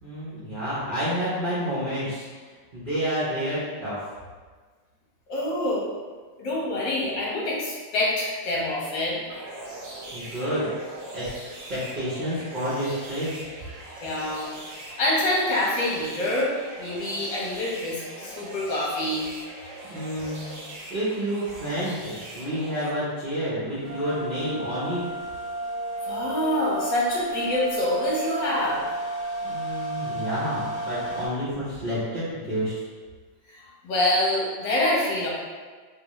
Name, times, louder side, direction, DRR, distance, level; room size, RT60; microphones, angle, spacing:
voice 1, 0.0-2.3 2.7-4.0 10.1-10.7 11.1-11.3 11.7-13.5 19.9-20.6 20.9-25.0 29.4-32.8, equal, 85° right, -11 dB, 0.4 m, -29 dB
voice 2, 5.3-5.9 6.4-9.2 14.0-14.5 14.7-16.5 16.8-19.3 26.0-28.8 33.5-35.3, left 1 dB, 70° left, -5 dB, 1.5 m, -26 dB
sound 1, 9.3-22.9, right 1 dB, 65° right, 0.8 m, -41 dB
sound 2, 23.8-31.3, right 1 dB, 55° left, 1.1 m, -32 dB
3.3 x 2.6 x 3.0 m, 1.5 s
omnidirectional pair, 2.1 m